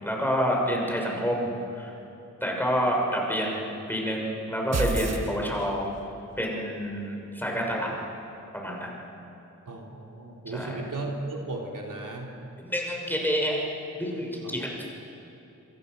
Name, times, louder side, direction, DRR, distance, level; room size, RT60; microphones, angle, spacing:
voice 1, 0.0-1.9 2.4-3.6 3.9-5.9 6.4-7.9 8.5-9.0 10.5-10.9 12.6-13.6 13.9-14.7, equal, 5° left, -1 dB, 6.3 m, -28 dB
sound 1, 4.7-6.0, right 3 dB, 55° right, 1.6 m, -29 dB
voice 2, 9.7-12.3 14.4-14.5, right 2 dB, 85° right, 0 dB, 3.4 m, -35 dB
26.5 x 25.5 x 6.7 m, 2.9 s
wide cardioid pair, 85°, 31 cm